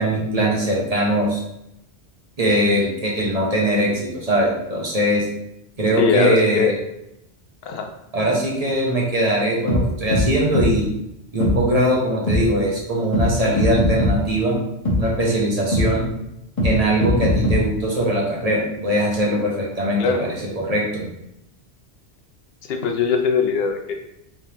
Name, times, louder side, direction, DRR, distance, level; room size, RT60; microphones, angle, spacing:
voice 1, 0.0-1.4 2.4-5.2 5.8-6.7 8.1-10.9 11.3-14.6 15.0-16.0 16.6-21.1, right 1 dB, 40° right, -3 dB, 0.9 m, -21 dB
voice 2, 6.0-6.8 7.7-7.9 20.0-20.2 22.7-23.9, left 6 dB, 70° left, 4 dB, 0.8 m, -21 dB
sound 1, 9.7-9.8 10.1-10.2 10.5-10.7 11.4-11.5 12.3-12.4 13.1-13.3 13.6-14.1 14.8-15.0 15.7-15.8 16.6-16.7 17.0-17.6, left 1 dB, 35° left, 0.9 m, -19 dB
3.4 x 3.4 x 2.8 m, 0.83 s
omnidirectional pair, 1.1 m